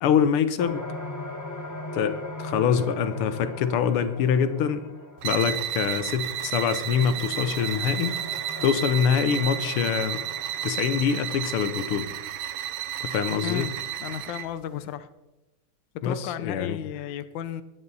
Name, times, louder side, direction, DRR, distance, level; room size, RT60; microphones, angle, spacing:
voice 1, 0.0-0.8 1.9-4.9 5.2-8.2 8.6-10.2 10.6-12.1 13.0-13.7 16.0-16.8, left 7 dB, 85° left, 12 dB, 1.8 m, -24 dB
sound 1, 0.6-12.0, left 1 dB, 10° left, 1.1 m, -40 dB
sound 2, 5.2-14.5, right 11 dB, 75° right, 1.4 m, -32 dB
voice 2, 13.4-13.7 14.0-15.1 15.9-17.6, left 10 dB, 70° left, 12 dB, 1.3 m, -33 dB
22.0 x 9.1 x 4.1 m, 1.0 s
omnidirectional pair, 2.3 m